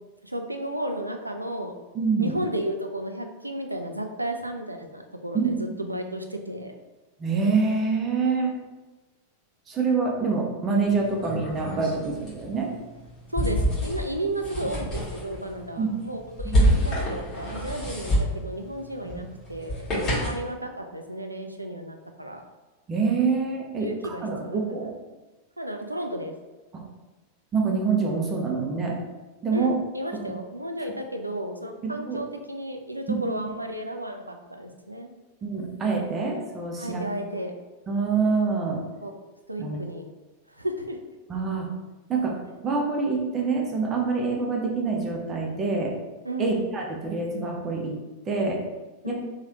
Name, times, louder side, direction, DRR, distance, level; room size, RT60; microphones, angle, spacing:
voice 1, 0.2-1.8 2.2-6.7 13.3-22.4 23.8-24.6 25.6-26.3 29.5-35.1 36.8-37.5 39.0-39.1 39.5-40.1 40.5-41.0 46.2-46.5 49.0-49.1, right 1 dB, 85° right, 4 dB, 0.3 m, -33 dB
voice 2, 1.9-2.4 5.3-5.8 7.2-8.5 9.7-12.7 15.8-15.9 16.4-16.7 19.0-19.2 22.9-24.9 26.7-26.8 27.5-29.0 29.4-29.8 32.1-32.2 33.1-33.2 35.4-37.0 37.9-38.8 39.6-39.8 41.3-41.7 42.1-45.9 46.4-48.0 48.3-48.6 49.0-49.1, right 4 dB, 25° right, -1 dB, 0.7 m, -26 dB
sound 1, 10.9-20.5, equal, 25° left, 1.5 m, -28 dB
3.1 x 2.3 x 2.9 m, 1.2 s
figure-of-eight pair, 90°, 0 cm